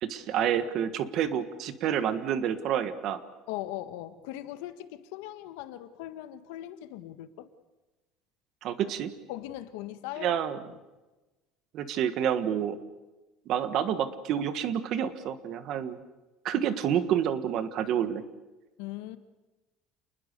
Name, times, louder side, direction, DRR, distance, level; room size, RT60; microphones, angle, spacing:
voice 1, 0.0-3.2 8.6-9.1 10.2-10.6 11.7-12.8 13.5-16.0 16.4-18.2, right 9 dB, 40° right, 12 dB, 1.5 m, -28 dB
voice 2, 3.5-7.5 9.3-10.3 10.7-10.8 18.8-19.2, left 14 dB, 85° left, 11 dB, 1.6 m, -39 dB
28.5 x 20.5 x 6.8 m, 1.1 s
cardioid pair, 180°, 0 cm